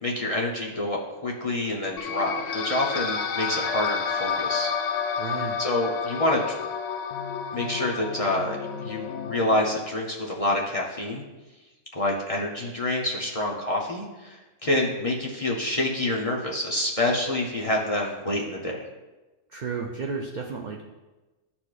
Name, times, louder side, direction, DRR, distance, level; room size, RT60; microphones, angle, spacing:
voice 1, 0.0-4.7 5.6-6.5 7.5-11.2 11.9-18.9, left 1 dB, 35° left, -3 dB, 0.6 m, -27 dB
sound 1, 2.0-9.6, left 6 dB, 75° left, 1.0 m, -30 dB
voice 2, 5.2-5.6 19.5-20.8, right 5 dB, 60° right, 1 dB, 0.4 m, -32 dB
11.5 x 4.3 x 2.4 m, 1.1 s
omnidirectional pair, 1.3 m